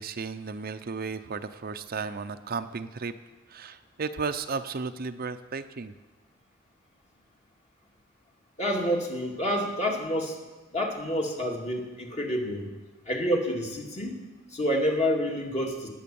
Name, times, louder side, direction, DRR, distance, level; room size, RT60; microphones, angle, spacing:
voice 1, 0.0-3.1 3.5-5.9, right 4 dB, 50° right, 9 dB, 0.6 m, -34 dB
voice 2, 8.6-10.4 10.7-12.7 13.1-14.2 14.5-15.9, equal, 35° left, 0 dB, 2.3 m, -28 dB
19.0 x 8.6 x 7.0 m, 1.2 s
head